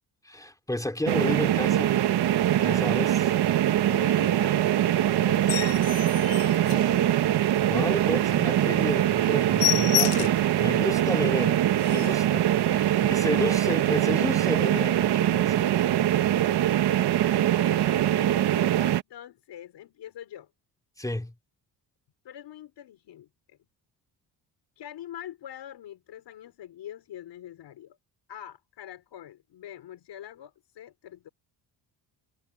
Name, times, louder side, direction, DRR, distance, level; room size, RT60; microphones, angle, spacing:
voice 1, 0.2-2.0 2.6-3.2 7.7-11.6 11.9-12.4 12.7-15.8 21.0-21.3, left 1 dB, 10° left, 3.4 m, -31 dB
sound 1, 1.1-19.0, right 12 dB, 65° right, 1.2 m, -23 dB
voice 2, 2.6-3.1 3.8-7.0 10.0-10.2 10.6-10.9 12.0-12.2 12.6-13.2 15.9-16.7 17.2-20.5 22.2-23.6 24.8-28.0 28.3-31.3, left 11 dB, 70° left, 4.8 m, -45 dB
sound 2, 5.3-7.5 7.9-8.0 8.4-8.5 8.8-8.9 9.2-10.5 11.0-11.1 11.5-11.6 11.8-12.3 13.0-13.2, left 18 dB, 90° left, 0.5 m, -30 dB
cardioid pair, 130°, 42 cm